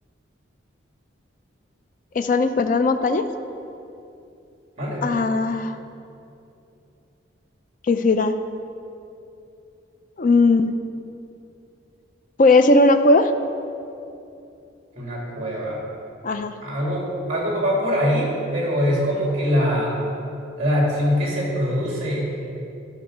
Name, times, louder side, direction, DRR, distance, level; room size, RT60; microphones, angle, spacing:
voice 1, 2.1-3.2 5.0-5.8 7.9-8.4 10.2-10.7 12.4-13.3 16.2-16.5, left 2 dB, 40° left, 8 dB, 0.4 m, -18 dB
voice 2, 4.8-5.1 15.0-15.8 16.6-19.9 20.6-22.3, equal, 35° right, -4 dB, 2.7 m, -23 dB
10.5 x 5.3 x 6.6 m, 2.7 s
head